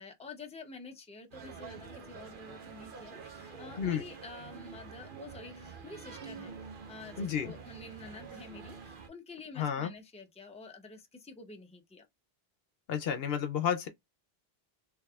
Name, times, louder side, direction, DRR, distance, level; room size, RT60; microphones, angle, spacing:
voice 1, 0.0-6.5 6.9-12.1, left 3 dB, 5° left, 0.6 m, -48 dB
sound 1, 1.3-9.1, right 5 dB, 55° right, 1.0 m, -47 dB
voice 2, 7.2-7.5 9.6-9.9 12.9-13.9, left 8 dB, 70° left, 0.8 m, -31 dB
3.3 x 3.2 x 2.3 m
omnidirectional pair, 1.1 m